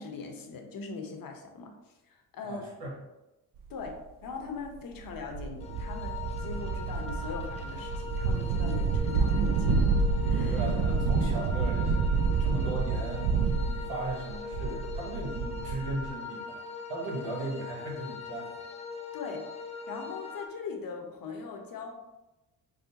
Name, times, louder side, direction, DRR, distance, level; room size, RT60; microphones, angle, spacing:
voice 1, 0.0-2.6 3.7-9.8 10.2-10.6 19.1-19.5 19.9-21.9, left 4 dB, 50° left, 3 dB, 0.8 m, -41 dB
voice 2, 2.4-3.0 10.5-16.6 16.9-18.5, right 2 dB, 85° right, -2 dB, 1.2 m, -37 dB
sound 1, 3.9-4.0 4.6-4.7 5.1-16.1, right 4 dB, 50° right, 0.5 m, -28 dB
sound 2, 5.6-20.5, left 5 dB, 15° left, 0.4 m, -41 dB
5.0 x 2.1 x 2.8 m, 0.98 s
supercardioid pair, 70°, 42 cm